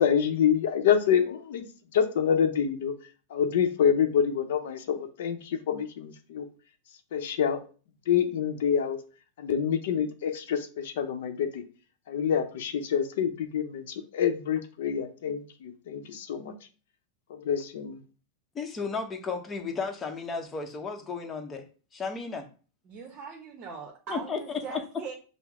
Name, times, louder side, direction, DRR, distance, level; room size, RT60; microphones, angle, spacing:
voice 1, 0.0-1.6 1.9-3.0 3.3-6.5 7.1-7.6 8.1-9.0 9.4-11.6 12.1-16.6 17.3-18.0, left 8 dB, 75° left, 9 dB, 0.6 m, -27 dB
voice 2, 18.5-22.5 24.1-24.4 24.7-24.8, left 5 dB, 20° left, 4 dB, 0.8 m, -34 dB
voice 3, 22.9-25.1, right 6 dB, 40° right, 2 dB, 0.8 m, -40 dB
5.6 x 2.0 x 3.6 m, 0.37 s
hypercardioid pair, 115°, 0 cm